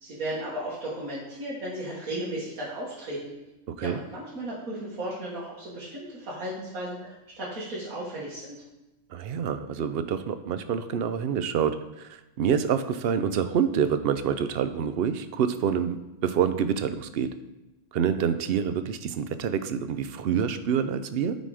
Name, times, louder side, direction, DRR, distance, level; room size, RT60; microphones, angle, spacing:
voice 1, 0.0-3.3 3.8-8.6, right 1 dB, 80° right, -6 dB, 2.1 m, -35 dB
voice 2, 3.7-4.0 9.1-16.0 16.2-17.3 17.9-21.4, right 7 dB, 65° right, 11 dB, 0.6 m, -27 dB
9.2 x 4.1 x 4.8 m, 0.99 s
omnidirectional pair, 1.4 m